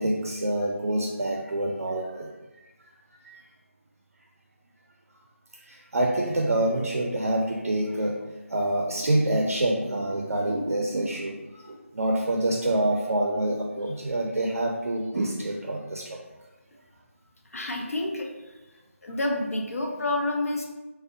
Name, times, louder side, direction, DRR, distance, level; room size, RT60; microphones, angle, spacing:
voice 1, 0.0-2.3 3.1-3.4 5.6-8.2 8.5-16.2, right 1 dB, 85° right, 0 dB, 0.4 m, -27 dB
voice 2, 17.5-18.6 19.0-20.7, left 2 dB, 90° left, 1 dB, 0.5 m, -29 dB
2.6 x 2.0 x 2.4 m, 1.1 s
figure-of-eight pair, 175°, 8 cm